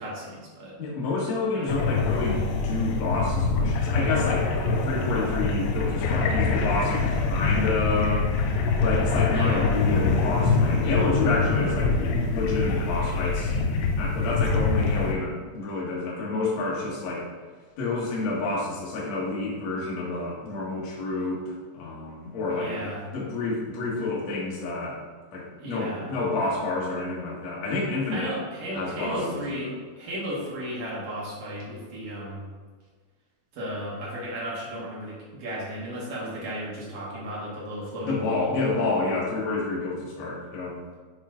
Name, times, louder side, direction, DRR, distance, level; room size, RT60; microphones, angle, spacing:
voice 1, 0.0-0.8 1.5-1.8 9.3-9.8 22.5-23.0 25.6-26.1 28.1-32.5 33.5-38.5, equal, 60° right, -7 dB, 1.6 m, -34 dB
voice 2, 0.8-8.3 8.8-11.9 12.3-13.5 13.8-17.3 17.8-25.0 25.3-28.3 28.7-29.4 38.0-40.8, left 3 dB, 55° left, -6 dB, 2.0 m, -29 dB
sound 1, 1.7-15.1, left 4 dB, 85° left, 2.7 m, -24 dB
8.3 x 3.1 x 3.7 m, 1.5 s
omnidirectional pair, 5.0 m